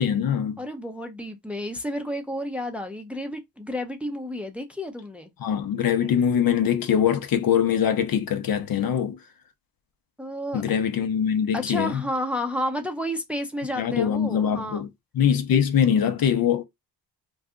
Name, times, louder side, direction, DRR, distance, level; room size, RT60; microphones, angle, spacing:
voice 1, 0.0-0.6 5.4-9.2 10.5-12.0 13.8-14.9 15.1-16.6, left 8 dB, 55° left, 0.7 m, -23 dB
voice 2, 0.6-5.3 10.2-10.6 11.5-14.8, left 1 dB, 5° right, 0.6 m, -31 dB
2.6 x 2.3 x 3.6 m
cardioid pair, 75°, 44 cm